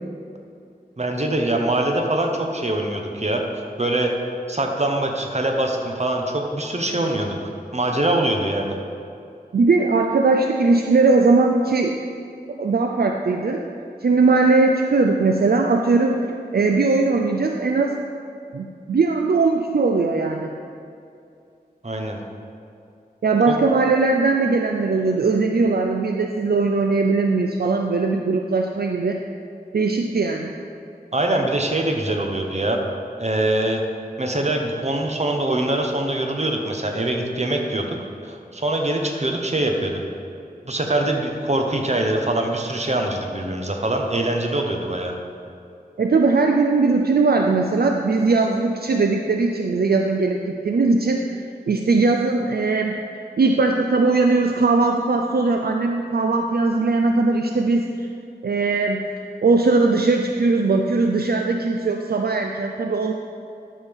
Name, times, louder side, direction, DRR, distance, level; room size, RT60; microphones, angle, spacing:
voice 1, 1.0-3.4 3.8-4.1 4.5-7.4 7.7-8.7 21.8-22.2 23.5-23.6 31.1-32.8 33.2-33.8 34.2-37.9 38.2-40.0 40.7-45.1, right 1 dB, 45° right, 2 dB, 1.0 m, -23 dB
voice 2, 9.5-12.0 12.5-13.6 14.0-16.2 16.5-18.0 18.5-20.5 23.2-29.2 29.7-30.6 46.0-51.2 51.7-52.9 53.4-58.1 58.4-59.0 59.4-63.1, right 3 dB, 70° right, 3 dB, 0.4 m, -19 dB
12.0 x 5.5 x 3.5 m, 2.5 s
wide cardioid pair, 50°, 16 cm